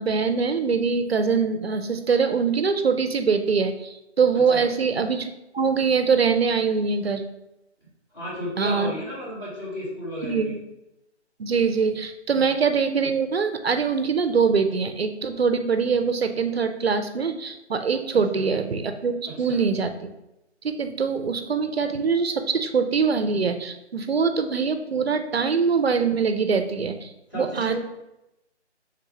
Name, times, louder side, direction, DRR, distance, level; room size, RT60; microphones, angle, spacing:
voice 1, 0.0-5.3 5.5-7.2 8.6-8.9 10.2-10.5 11.4-20.1 20.6-27.8, right 5 dB, 60° right, 8 dB, 0.5 m, -23 dB
voice 2, 8.1-10.5 12.3-12.4 18.3-18.4 19.3-19.6 27.3-27.8, equal, 20° left, -10 dB, 1.3 m, -33 dB
3.6 x 2.9 x 4.7 m, 0.90 s
figure-of-eight pair, 175°, 35 cm